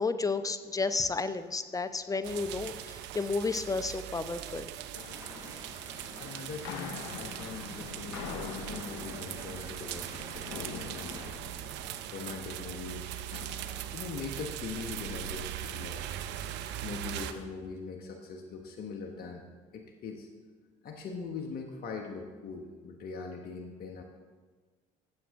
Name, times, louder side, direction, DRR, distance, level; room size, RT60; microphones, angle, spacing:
voice 1, 0.0-4.7, left 4 dB, 20° left, 12 dB, 0.7 m, -32 dB
sound 1, 0.6-0.9 1.2-1.6 1.9-3.6 3.9-4.2 4.8-13.1 13.3-15.2 15.4-15.8 16.1-17.5, left 7 dB, 80° left, 0.8 m, -47 dB
sound 2, 2.2-17.3, right 11 dB, 70° right, 0.6 m, -40 dB
sound 3, 5.1-11.4, right 1 dB, 15° right, 2.4 m, -50 dB
voice 2, 6.2-11.3 12.1-13.1 13.9-16.0 16.8-19.4 19.7-20.3 20.8-24.0, left 4 dB, 55° left, 3 dB, 1.1 m, -41 dB
15.5 x 7.4 x 3.5 m, 1.4 s
hypercardioid pair, 65°, 19 cm